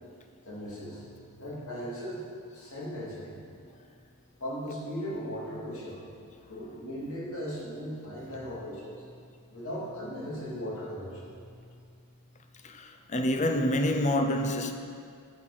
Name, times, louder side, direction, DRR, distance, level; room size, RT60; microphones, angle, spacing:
voice 1, 0.4-1.0 1.4-2.2 2.5-3.4 3.7-3.8 4.4-6.0 6.5-9.0 9.5-11.3, equal, 70° left, 2.8 m, -37 dB
voice 2, 12.6-14.7, left 1 dB, 30° left, 0.6 m, -27 dB
11.0 x 7.6 x 4.2 m
head